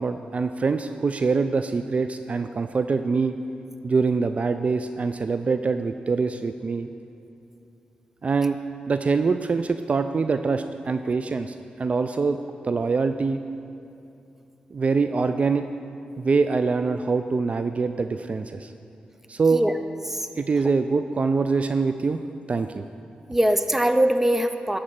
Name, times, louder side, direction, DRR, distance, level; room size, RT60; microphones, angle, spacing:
voice 1, 0.0-3.4 3.8-6.9 8.2-8.6 8.9-12.4 12.6-13.4 14.7-15.7 16.2-18.7 19.3-19.6 20.4-22.2 22.5-22.9, right 4 dB, 45° right, 9 dB, 0.3 m, -24 dB
voice 2, 23.3-24.8, right 1 dB, 10° right, 8 dB, 0.6 m, -22 dB
11.5 x 4.3 x 7.5 m, 2.8 s
cardioid pair, 60°, 3 cm